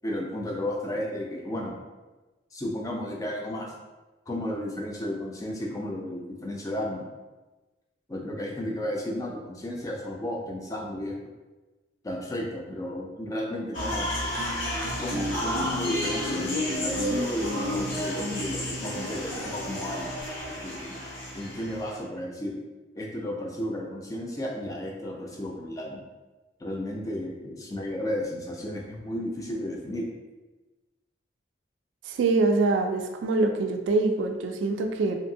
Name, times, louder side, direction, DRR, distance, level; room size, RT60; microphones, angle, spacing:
voice 1, 0.0-1.7 2.5-3.7 4.3-7.1 8.1-11.2 12.0-14.1 15.0-20.2 20.6-21.0 21.3-22.6 23.0-26.0 26.6-30.1, left 1 dB, 15° left, -1 dB, 0.3 m, -33 dB
sound 1, 13.7-21.9, left 1 dB, 80° left, 0.8 m, -31 dB
voice 2, 32.0-35.2, right 3 dB, 75° right, 5 dB, 0.3 m, -24 dB
2.7 x 2.6 x 2.6 m, 1.2 s
head